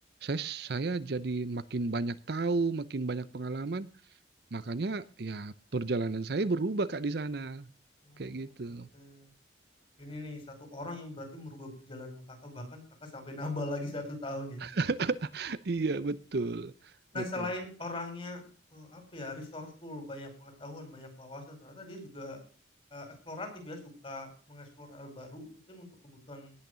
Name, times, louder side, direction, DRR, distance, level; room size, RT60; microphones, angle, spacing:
voice 1, 0.2-3.9 4.5-7.7 8.2-8.9 14.6-17.5, right 3 dB, 55° right, 15 dB, 0.6 m, -33 dB
voice 2, 8.0-9.3 10.0-14.6 17.1-18.4 18.7-22.4 22.9-26.5, left 2 dB, 30° left, 4 dB, 5.0 m, -41 dB
18.5 x 6.6 x 6.8 m, 0.39 s
head